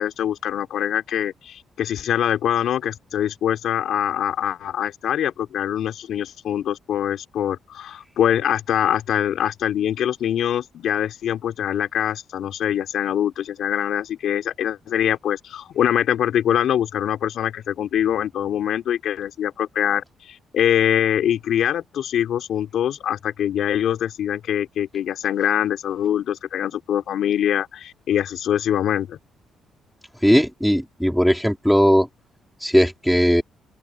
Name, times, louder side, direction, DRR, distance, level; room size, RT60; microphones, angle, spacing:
voice 1, 0.0-29.2, left 10 dB, 70° left, 4.0 m, -23 dB
voice 2, 30.2-32.1 32.6-33.4, equal, ahead, 3.9 m, -18 dB
open air
cardioid pair, 90°, 0 cm